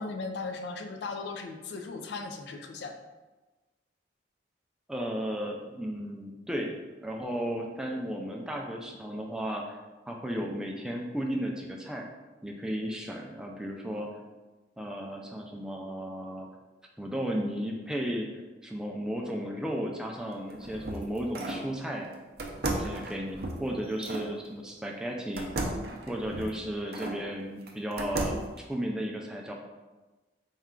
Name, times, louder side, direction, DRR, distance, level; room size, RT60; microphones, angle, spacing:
voice 1, 0.0-3.0, left 3 dB, 70° left, 6 dB, 0.4 m, -37 dB
voice 2, 4.9-9.8 10.1-12.1 12.4-14.1 14.8-16.5 17.0-18.3 18.6-22.1 22.7-25.5 26.0-29.5, equal, 5° right, 0 dB, 0.3 m, -34 dB
sound 1, 20.3-21.7 22.4-24.3 25.4-27.2 27.7-28.6, right 2 dB, 60° right, 0.5 m, -35 dB
4.2 x 2.3 x 3.6 m, 1.2 s
head